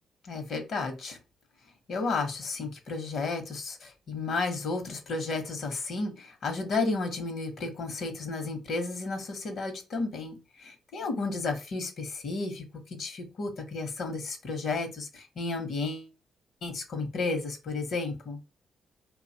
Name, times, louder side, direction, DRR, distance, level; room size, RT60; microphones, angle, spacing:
voice 1, 0.2-1.2 1.9-16.1 16.6-18.4, left 3 dB, 65° left, 0.9 m, -33 dB
2.8 x 2.3 x 2.7 m
cardioid pair, 75°, 0 cm